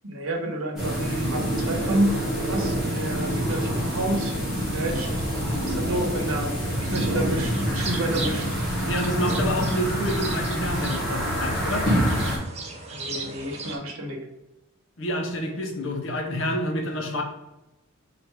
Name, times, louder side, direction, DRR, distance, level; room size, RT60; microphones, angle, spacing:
voice 1, 0.0-8.5 12.9-14.3, right 1 dB, 70° right, 2 dB, 0.9 m, -30 dB
sound 1, 0.8-12.4, equal, ahead, 1.1 m, -26 dB
sound 2, 6.9-13.8, right 3 dB, 30° right, 0.5 m, -38 dB
voice 2, 8.8-11.9 15.0-17.2, equal, 60° left, 3 dB, 0.7 m, -28 dB
3.4 x 2.5 x 4.4 m, 0.95 s
head